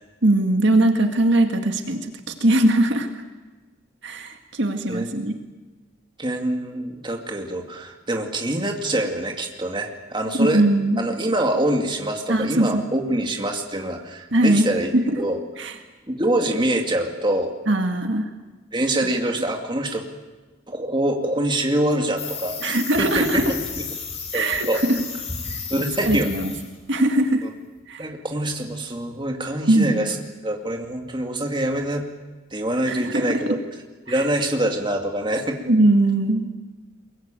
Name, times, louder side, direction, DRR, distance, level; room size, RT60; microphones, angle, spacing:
voice 1, 0.2-3.1 4.0-5.3 10.3-11.0 12.3-12.8 14.3-14.7 14.9-15.2 15.6-15.8 17.7-18.3 22.6-23.5 24.3-25.0 25.5-25.6 26.0-26.5 26.9-27.5 27.9-28.1 29.7-30.0 32.9-33.6 34.1-34.2 35.7-36.5, right 1 dB, 60° right, 5 dB, 2.0 m, -20 dB
voice 2, 6.2-10.6 11.0-15.4 16.1-17.5 18.7-20.0 20.7-23.8 24.3-24.8 25.7-26.4 28.0-30.2 30.4-32.1 32.5-33.6 34.1-35.6, right 1 dB, 25° right, 3 dB, 2.3 m, -25 dB
sound 1, 22.2-26.7 27.0-27.3, left 5 dB, 30° left, 5.0 m, -33 dB
23.5 x 22.5 x 9.0 m, 1.3 s
head